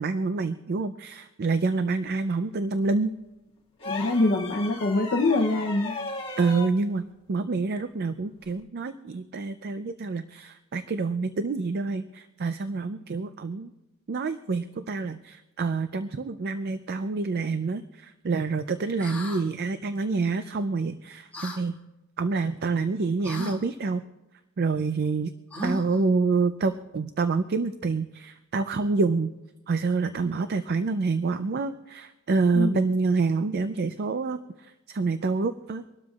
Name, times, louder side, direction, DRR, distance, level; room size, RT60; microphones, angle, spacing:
voice 1, 0.0-3.1 6.4-13.7 14.1-21.7 22.2-24.0 24.6-25.3 25.6-29.3 29.7-35.8, right 4 dB, 50° right, 11 dB, 0.4 m, -27 dB
sound 1, 3.8-6.8 8.4-8.6, left 3 dB, 25° left, 1.7 m, -36 dB
voice 2, 3.9-6.0 32.5-32.8, left 2 dB, 50° left, 2 dB, 0.7 m, -24 dB
sound 2, 19.0-19.4 21.3-21.6 23.2-23.6 25.5-26.0, left 1 dB, 5° left, 1.8 m, -35 dB
25.0 x 12.5 x 2.4 m, 1.0 s
head